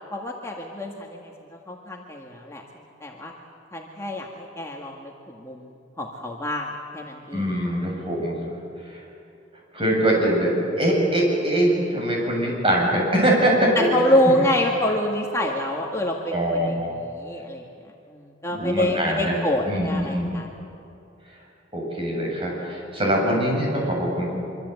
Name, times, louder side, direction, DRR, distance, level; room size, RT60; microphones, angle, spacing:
voice 1, 0.1-3.3 3.7-5.7 6.0-6.7 6.9-7.7 13.8-17.6 18.1-20.5, left 1 dB, 15° left, -1 dB, 1.8 m, -26 dB
voice 2, 7.3-8.4 8.9-9.0 9.7-13.9 16.3-16.9 18.5-19.4 19.7-20.3 21.7-24.4, right 1 dB, 30° right, -1 dB, 7.6 m, -23 dB
25.0 x 25.0 x 8.2 m, 2.7 s
head